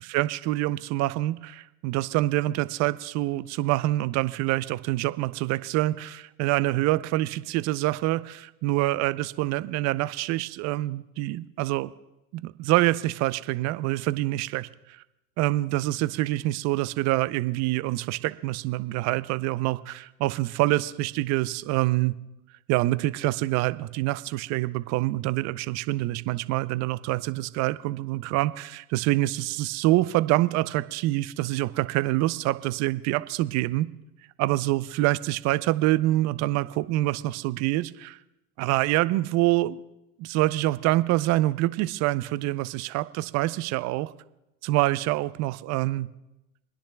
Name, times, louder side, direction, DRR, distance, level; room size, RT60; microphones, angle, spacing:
voice 1, 0.1-11.9 12.4-15.0 15.4-22.1 22.7-33.9 34.4-38.2 38.6-39.8 40.2-44.1 44.6-46.1, right 17 dB, 45° right, 15 dB, 0.5 m, -26 dB
29.5 x 10.0 x 2.3 m, 0.92 s
hypercardioid pair, 95°, 40 cm